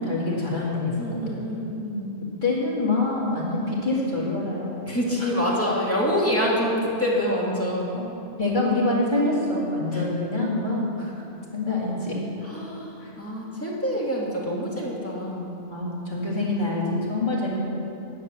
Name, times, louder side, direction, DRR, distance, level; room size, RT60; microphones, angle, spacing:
voice 1, 0.0-0.9 1.3-1.4 2.4-4.8 5.2-5.3 7.9-8.0 8.4-11.1 11.5-12.2 13.0-13.1 15.7-17.6, left 2 dB, 40° left, -5 dB, 2.4 m, -25 dB
voice 2, 1.0-2.1 4.9-8.0 9.9-10.0 12.4-15.6, equal, 10° left, -5 dB, 1.9 m, -26 dB
10.0 x 7.7 x 6.7 m, 2.9 s
omnidirectional pair, 1.2 m